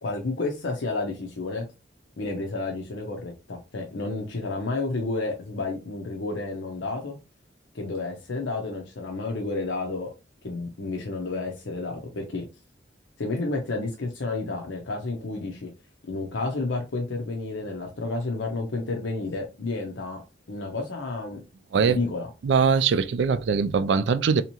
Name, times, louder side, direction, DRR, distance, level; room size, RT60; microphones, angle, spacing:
voice 1, 0.0-1.6 2.2-7.2 7.7-10.1 10.4-12.4 13.2-15.7 16.1-20.2 20.5-21.4 21.8-22.3, left 3 dB, 80° left, 0.7 m, -31 dB
voice 2, 22.4-24.4, right 6 dB, 70° right, 0.3 m, -22 dB
3.5 x 2.9 x 2.9 m
head